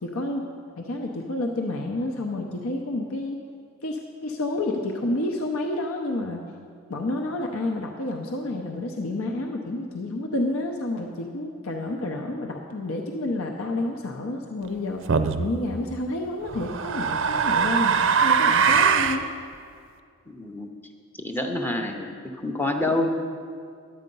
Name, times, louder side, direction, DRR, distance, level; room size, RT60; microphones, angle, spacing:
voice 1, 0.0-3.4 3.8-6.4 6.9-15.1 15.4-19.3, left 2 dB, 70° left, 2 dB, 0.7 m, -29 dB
sound 1, 15.1-15.5 16.5-19.2, right 6 dB, 60° right, 0.5 m, -21 dB
voice 2, 20.3-20.7 21.2-22.2 22.4-23.1, left 1 dB, 10° left, 3 dB, 0.6 m, -27 dB
11.0 x 8.6 x 5.4 m, 2.2 s
head